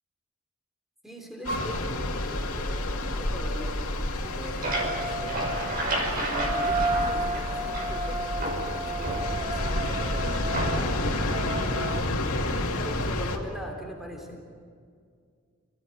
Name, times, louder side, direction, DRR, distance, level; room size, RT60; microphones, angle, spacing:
voice 1, 1.0-5.6 6.1-11.7 12.1-14.4, equal, ahead, 1 dB, 3.6 m, -41 dB
sound 1, 1.4-13.4, left 2 dB, 85° left, 2.4 m, -30 dB
sound 2, 1.5-1.7 4.6-12.1, right 3 dB, 25° right, 0.8 m, -33 dB
sound 3, 4.1-8.1 8.4-9.7 10.5-11.1, right 1 dB, 40° right, 5.8 m, -32 dB
28.5 x 17.5 x 9.2 m, 2.1 s
head